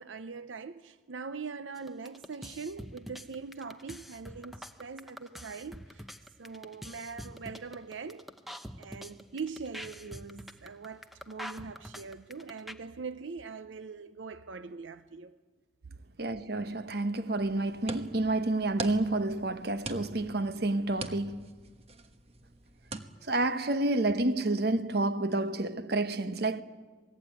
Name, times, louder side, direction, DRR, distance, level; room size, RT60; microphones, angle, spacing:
voice 1, 0.0-6.0 6.4-8.3 8.8-15.4, right 5 dB, 80° right, 0.7 m, -42 dB
sound 1, 1.8-12.7, equal, ahead, 0.9 m, -44 dB
voice 2, 16.2-21.5 23.2-26.6, right 2 dB, 55° right, 1.0 m, -29 dB
sound 2, 17.4-23.0, right 3 dB, 35° right, 1.2 m, -42 dB
27.0 x 19.5 x 9.2 m
head